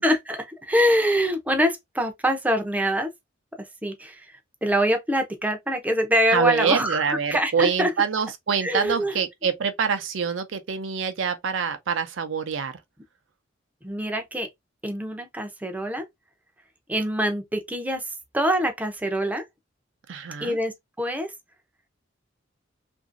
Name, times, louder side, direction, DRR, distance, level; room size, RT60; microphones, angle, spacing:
voice 1, 0.0-3.1 3.8-4.3 4.6-7.9 8.6-9.1 13.8-14.5 14.8-16.0 16.9-18.0 18.3-19.4 20.4-21.3, equal, 10° right, 0.5 m, -24 dB
voice 2, 6.3-12.7 20.1-20.6, right 6 dB, 70° right, 0.5 m, -25 dB
2.8 x 2.6 x 2.5 m
head